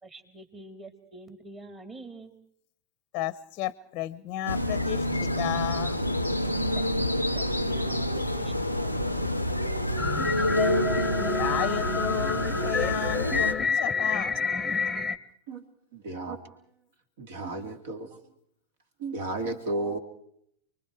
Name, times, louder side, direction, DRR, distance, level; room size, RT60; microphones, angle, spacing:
voice 1, 0.0-2.3 6.8-8.5 8.8-9.3, right 2 dB, 20° right, 7 dB, 3.3 m, -47 dB
voice 2, 3.1-6.0 10.4-10.5 11.2-14.4, left 14 dB, 35° left, 19 dB, 0.8 m, -33 dB
sound 1, 4.5-13.5, left 1 dB, 90° right, 1.5 m, -28 dB
sound 2, 10.0-15.2, left 4 dB, 10° left, 1.1 m, -28 dB
voice 3, 15.9-16.4 17.2-18.2 19.0-20.0, right 2 dB, 55° right, 7 dB, 3.1 m, -33 dB
29.5 x 23.0 x 4.8 m, 0.70 s
figure-of-eight pair, 90°, 0 cm